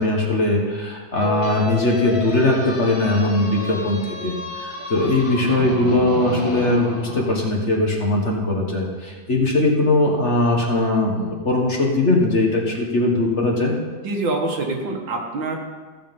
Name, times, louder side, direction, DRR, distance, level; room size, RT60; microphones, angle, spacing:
voice 1, 0.0-13.8, left 2 dB, 40° left, -1 dB, 1.8 m, -20 dB
sound 1, 1.1-7.4, left 2 dB, 20° left, 1.2 m, -32 dB
voice 2, 14.0-15.6, right 2 dB, 75° right, 1 dB, 2.2 m, -25 dB
15.5 x 6.7 x 5.4 m, 1.4 s
omnidirectional pair, 2.1 m